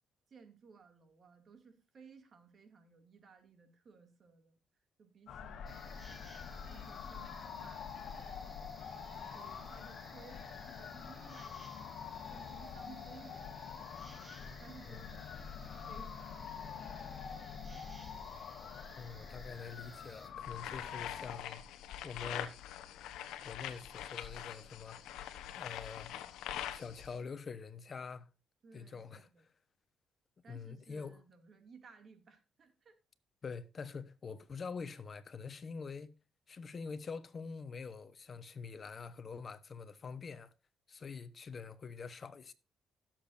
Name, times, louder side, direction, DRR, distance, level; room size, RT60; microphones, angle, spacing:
voice 1, 0.3-4.6 5.0-6.0 6.7-7.9 8.9-15.3 15.9-17.1 28.6-29.4 30.4-33.0 41.8-41.9, right 5 dB, 50° right, 2.3 m, -59 dB
sound 1, 5.3-21.4, left 7 dB, 70° left, 1.5 m, -46 dB
sound 2, 5.7-20.3, right 2 dB, 20° right, 2.5 m, -58 dB
voice 2, 19.0-21.6 22.0-22.5 23.4-25.0 25.5-26.1 26.7-28.3 28.7-29.3 30.5-31.2 33.4-36.1 36.5-40.5 40.9-42.5, left 5 dB, 40° left, 1.1 m, -45 dB
sound 3, 20.4-27.2, left 11 dB, 90° left, 0.9 m, -44 dB
16.5 x 7.5 x 2.6 m
cardioid pair, 85°, 0 cm